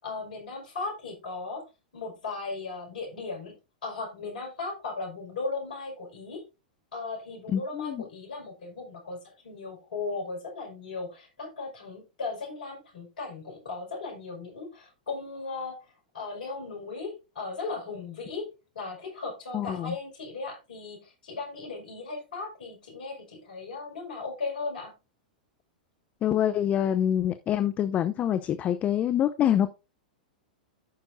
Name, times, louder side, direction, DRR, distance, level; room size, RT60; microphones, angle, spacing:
voice 1, 0.0-1.6 1.9-6.4 6.9-15.8 16.1-24.9, left 3 dB, 70° left, 5.2 m, -37 dB
voice 2, 7.5-8.0 19.5-19.9 26.2-29.7, left 10 dB, 30° left, 0.6 m, -26 dB
14.5 x 5.9 x 2.6 m
hypercardioid pair, 105°, 5 cm